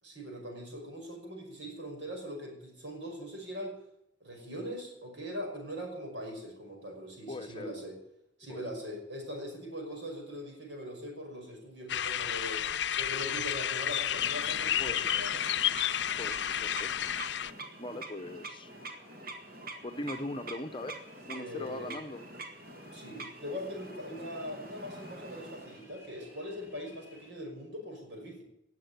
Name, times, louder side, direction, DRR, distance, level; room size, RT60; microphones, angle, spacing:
voice 1, 0.0-3.8 4.2-8.0 8.4-12.6 13.0-15.4 21.3-21.9 22.9-28.4, equal, 70° right, 2 dB, 5.6 m, -41 dB
voice 2, 7.3-7.7 8.5-8.6 14.8-15.0 16.2-16.9 17.8-18.7 19.8-22.2, left 1 dB, 25° left, 7 dB, 0.9 m, -40 dB
sound 1, 11.9-17.5, left 10 dB, 65° left, 0.6 m, -31 dB
sound 2, 14.1-25.9, right 2 dB, 50° right, 1.9 m, -46 dB
sound 3, 15.8-27.3, equal, 15° right, 4.0 m, -56 dB
18.5 x 7.6 x 9.6 m, 0.81 s
head